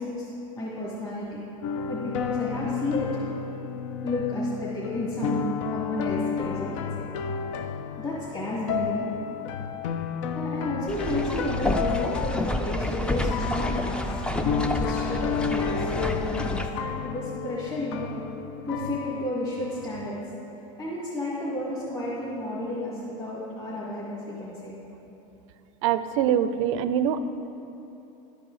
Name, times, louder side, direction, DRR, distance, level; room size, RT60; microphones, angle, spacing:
voice 1, 0.0-1.4 1.9-3.1 4.0-7.0 8.0-9.1 10.3-14.0 14.3-18.1 18.6-20.2 20.8-24.7, left 1 dB, 25° left, -9 dB, 1.8 m, -32 dB
sound 1, 1.6-20.2, left 7 dB, 75° left, 0.5 m, -32 dB
sound 2, 10.9-16.7, left 1 dB, 5° left, 0.3 m, -29 dB
voice 2, 25.8-27.2, right 9 dB, 75° right, 12 dB, 0.4 m, -24 dB
11.5 x 4.9 x 3.8 m, 3.0 s
supercardioid pair, 130°, 17 cm